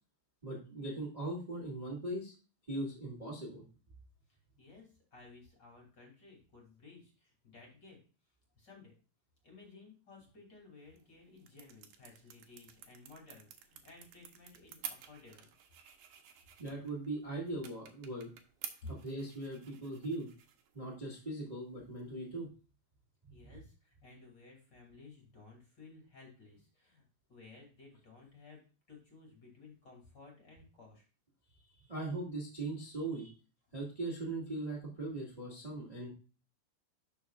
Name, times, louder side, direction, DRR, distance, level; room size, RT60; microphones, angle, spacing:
voice 1, 0.4-2.3 2.7-3.6 16.6-18.3 19.0-20.3 20.7-22.5 31.9-33.2 33.7-36.1, right 2 dB, 25° right, -4 dB, 0.7 m, -39 dB
voice 2, 4.3-8.0 8.6-9.0 9.4-15.8 16.2-16.3 18.8-18.9 23.3-31.0 31.4-31.9 33.1-33.3, left 3 dB, 30° left, 0 dB, 2.6 m, -56 dB
sound 1, 10.8-22.3, right 9 dB, 90° right, 1.8 m, -52 dB
11.5 x 5.7 x 2.4 m, 0.35 s
omnidirectional pair, 5.0 m